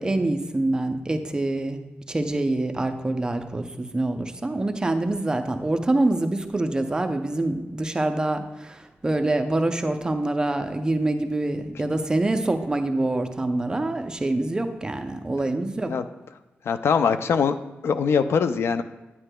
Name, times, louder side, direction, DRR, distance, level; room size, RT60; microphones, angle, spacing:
voice 1, 0.0-1.8 2.1-15.9, right 2 dB, 20° right, 7 dB, 0.5 m, -25 dB
voice 2, 16.7-17.6 17.8-18.8, left 6 dB, 75° left, 10 dB, 0.4 m, -22 dB
9.7 x 9.4 x 2.2 m, 1.0 s
wide cardioid pair, 155°, 4 cm